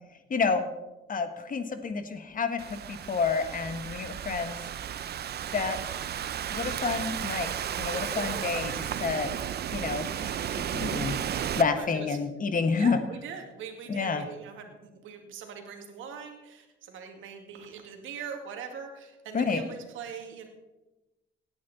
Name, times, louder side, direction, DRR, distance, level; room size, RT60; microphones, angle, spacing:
voice 1, 0.3-0.7 1.1-4.6 5.5-5.8 6.5-7.5 7.8-9.3 9.7-11.2 11.6-13.0 13.9-14.3 19.3-19.6, left 5 dB, 45° left, 8 dB, 1.5 m, -29 dB
Thunderstorm / Rain, 2.6-11.6, right 9 dB, 55° right, 0.6 m, -34 dB
voice 2, 7.9-8.8 11.4-12.2 12.8-20.5, right 6 dB, 85° right, 4 dB, 2.2 m, -42 dB
18.0 x 9.6 x 4.2 m, 1.0 s
cardioid pair, 90°, 20 cm